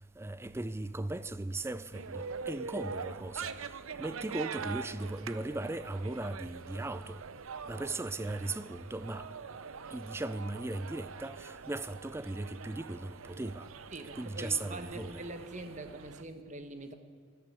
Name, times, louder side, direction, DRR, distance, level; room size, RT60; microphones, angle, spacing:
voice 1, 0.2-7.2 7.7-9.3 9.9-13.7 14.1-15.2, right 2 dB, 10° right, 0.4 m, -38 dB
sound 1, 1.9-16.2, right 5 dB, 80° right, 0.6 m, -44 dB
voice 2, 13.9-16.9, right 2 dB, 35° right, 1.2 m, -44 dB
13.5 x 12.0 x 7.0 m
head